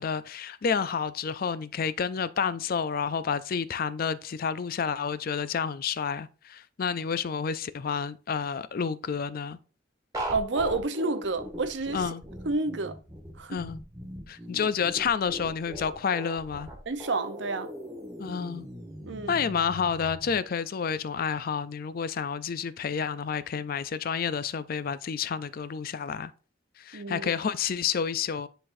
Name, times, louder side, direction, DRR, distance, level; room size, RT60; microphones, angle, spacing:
voice 1, 0.0-9.6 11.9-12.2 13.5-13.8 14.3-16.7 18.2-18.6 19.3-26.3 26.8-28.5, left 6 dB, 50° left, 0.4 m, -30 dB
sound 1, 10.1-20.3, equal, 20° right, 1.6 m, -39 dB
voice 2, 10.3-12.0 12.5-13.0 13.4-13.6 16.9-17.7 19.0-19.4 26.9-27.3, right 3 dB, 70° right, 0.7 m, -30 dB
10.0 x 4.0 x 2.6 m
head